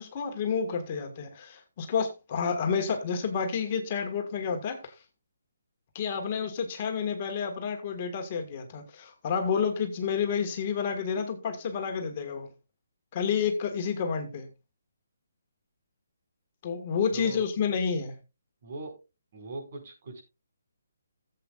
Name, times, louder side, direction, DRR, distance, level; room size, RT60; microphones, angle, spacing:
voice 1, 0.0-4.9 5.9-12.5 13.1-14.5 16.6-18.2, left 6 dB, 35° left, 1.6 m, -30 dB
voice 2, 18.6-18.9 19.3-20.2, right 3 dB, 50° right, 5.2 m, -40 dB
16.5 x 7.8 x 2.4 m
figure-of-eight pair, 145°, 0 cm